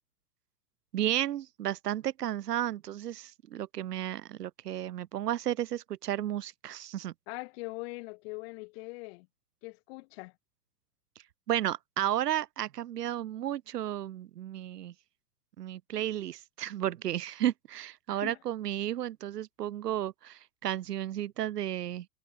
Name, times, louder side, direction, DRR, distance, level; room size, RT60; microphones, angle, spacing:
voice 1, 0.9-7.1 11.5-14.9 15.6-22.1, right 12 dB, 80° right, 1.2 m, -33 dB
voice 2, 7.3-9.3 9.6-10.3 18.1-18.4, left 27 dB, 40° left, 1.8 m, -41 dB
hypercardioid pair, 140°, 47 cm